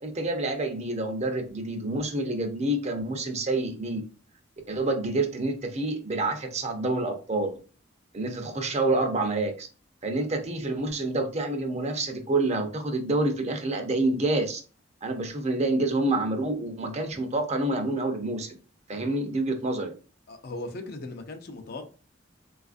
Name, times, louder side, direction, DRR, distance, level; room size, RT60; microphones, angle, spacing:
voice 1, 0.0-4.0 4.7-7.6 8.1-9.7 10.0-14.6 15.0-18.6 18.9-19.9, right 2 dB, 35° right, 5 dB, 0.6 m, -28 dB
voice 2, 20.3-21.8, left 2 dB, 55° left, 7 dB, 0.5 m, -38 dB
4.1 x 2.4 x 2.5 m, 0.36 s
head